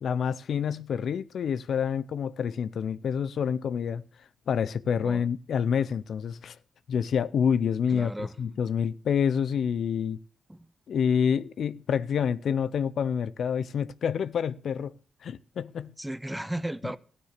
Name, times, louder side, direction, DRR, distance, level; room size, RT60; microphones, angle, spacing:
voice 1, 0.0-4.0 4.5-6.6 6.9-8.1 8.4-10.2 10.9-14.9 15.2-15.9, left 7 dB, 70° left, 0.6 m, -27 dB
voice 2, 7.9-8.3 10.5-10.7 16.0-17.0, right 1 dB, 10° right, 1.0 m, -35 dB
13.5 x 9.6 x 6.6 m
cardioid pair, 60°, 0 cm